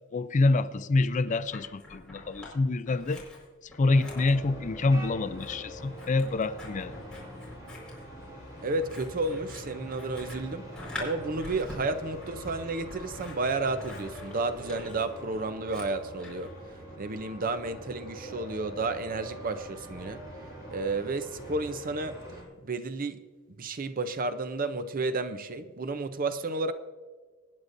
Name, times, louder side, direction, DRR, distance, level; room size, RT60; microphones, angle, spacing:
voice 1, 0.1-3.2 3.8-7.0, left 3 dB, 35° left, 0.4 m, -26 dB
Scissors, 1.0-2.5 2.8-16.5, left 2 dB, 5° left, 4.7 m, -46 dB
sound 1, 3.8-22.4, equal, 20° right, 4.3 m, -44 dB
voice 2, 8.6-10.7 11.0-16.5 17.0-20.2 20.7-22.1 22.6-23.2 23.6-26.7, right 3 dB, 45° right, 0.6 m, -32 dB
24.5 x 9.7 x 2.6 m
head